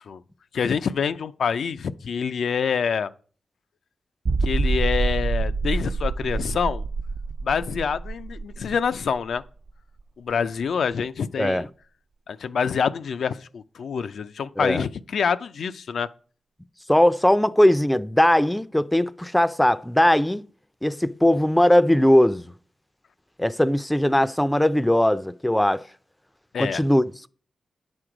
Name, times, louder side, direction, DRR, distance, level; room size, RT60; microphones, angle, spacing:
voice 1, 0.5-3.1 4.4-6.8 7.4-9.4 10.2-11.6 12.3-16.1 26.5-26.8, left 6 dB, 75° left, 0.4 m, -26 dB
sound 1, 4.3-9.7 10.0-10.1 10.6-10.7, right 3 dB, 60° right, 0.4 m, -26 dB
voice 2, 11.4-11.7 14.6-14.8 16.9-20.4 20.8-22.5 23.4-25.8 26.6-27.3, left 1 dB, 10° left, 0.4 m, -19 dB
9.6 x 6.2 x 4.9 m
cardioid pair, 65°, 0 cm